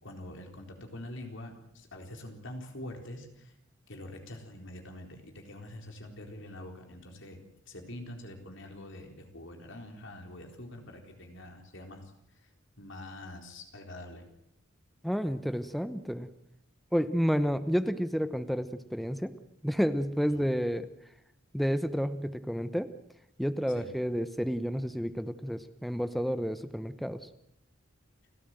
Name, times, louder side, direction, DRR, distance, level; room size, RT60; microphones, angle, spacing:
voice 1, 0.0-3.5 3.9-7.4 7.7-12.5 12.8-14.2 20.3-20.5 23.7-23.9, left 1 dB, 65° left, 3 dB, 4.2 m, -45 dB
voice 2, 15.0-16.3 16.9-19.3 19.6-20.9 21.5-22.9 23.4-27.3, equal, ahead, 11 dB, 0.9 m, -30 dB
30.0 x 12.5 x 7.7 m, 0.77 s
head